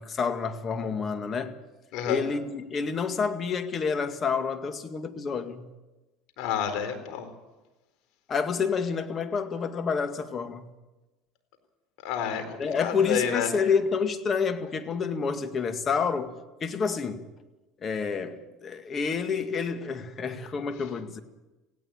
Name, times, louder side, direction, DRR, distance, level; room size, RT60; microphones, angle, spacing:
voice 1, 0.0-1.5 2.1-5.7 8.3-10.7 12.6-16.3 16.6-17.2 17.8-21.2, left 5 dB, 35° left, 2.0 m, -28 dB
voice 2, 6.4-7.3 12.0-13.5, left 8 dB, 65° left, 4.2 m, -29 dB
18.5 x 17.0 x 8.8 m
supercardioid pair, 90°, 0 cm